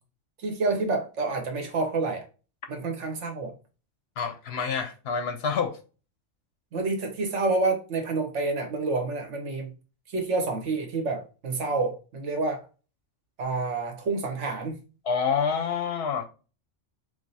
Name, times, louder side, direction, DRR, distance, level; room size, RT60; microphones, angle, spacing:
voice 1, 0.4-2.2 2.7-3.5 6.7-9.7 10.1-12.6 13.4-14.8, right 3 dB, 70° right, 1.2 m, -28 dB
voice 2, 4.2-5.8 15.0-16.2, left 6 dB, 65° left, 0.7 m, -27 dB
4.8 x 2.0 x 4.0 m
omnidirectional pair, 1.3 m